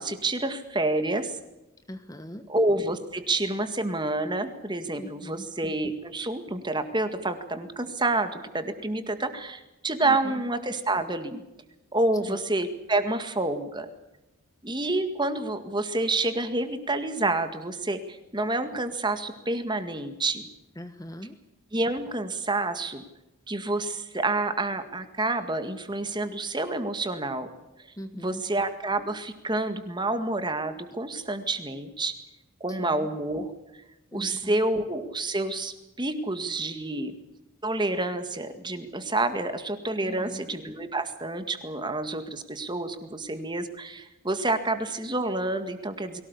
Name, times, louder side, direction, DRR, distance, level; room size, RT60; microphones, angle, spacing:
voice 1, 0.0-1.4 2.5-11.4 11.9-13.9 14.6-20.5 21.7-23.0 23.5-27.5 28.2-32.1 32.6-33.5 34.1-37.1 37.6-46.2, right 2 dB, 20° right, 8 dB, 1.9 m, -28 dB
voice 2, 1.9-2.4 5.0-5.5 10.0-10.4 12.2-12.4 20.8-21.3 28.0-28.4 32.7-33.1 34.1-34.6 40.0-40.4, equal, 15° left, 9 dB, 1.2 m, -40 dB
23.0 x 18.0 x 8.3 m, 0.96 s
head